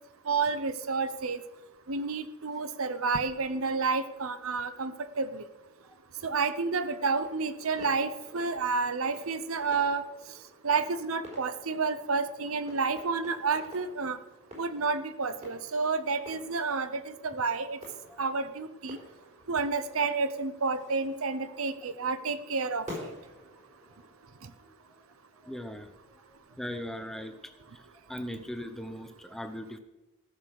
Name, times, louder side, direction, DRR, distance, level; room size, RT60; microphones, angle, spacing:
voice 1, 0.3-1.4 1.9-4.9 5.2-5.4 6.2-10.0 10.6-14.2 14.6-17.8 18.2-19.0 19.5-22.8, right 4 dB, 80° right, 12 dB, 0.9 m, -30 dB
sound 1, 6.7-24.1, left 1 dB, 35° right, 4.4 m, -50 dB
voice 2, 25.4-25.9 26.6-27.4 28.1-29.8, equal, ahead, 7 dB, 0.8 m, -38 dB
15.0 x 6.6 x 6.5 m, 1.0 s
head